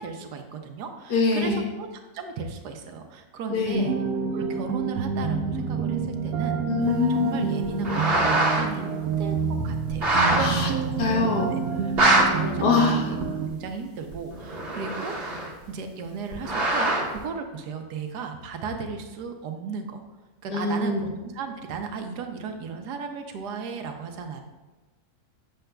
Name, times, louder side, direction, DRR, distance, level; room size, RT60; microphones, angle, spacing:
voice 1, 0.0-1.9 2.1-3.9 4.3-6.6 7.1-11.3 11.5-11.6 12.0-13.2 13.5-15.1 15.7-20.0 20.4-24.4, right 5 dB, 90° right, 5 dB, 1.3 m, -35 dB
voice 2, 1.1-1.7 3.5-3.9 6.6-7.5 10.3-10.7 11.0-11.5 12.6-13.0 20.5-21.0, left 4 dB, 75° left, 0 dB, 1.6 m, -24 dB
sound 1, 3.7-13.5, right 5 dB, 70° right, 1.0 m, -28 dB
sound 2, 7.6-8.7 9.1-9.2 9.9-10.4 11.0-11.1 11.7-12.2 13.2-13.3 14.1-15.6 16.3-17.2, right 2 dB, 45° right, 1.1 m, -23 dB
7.8 x 6.6 x 2.2 m, 1.2 s
omnidirectional pair, 1.7 m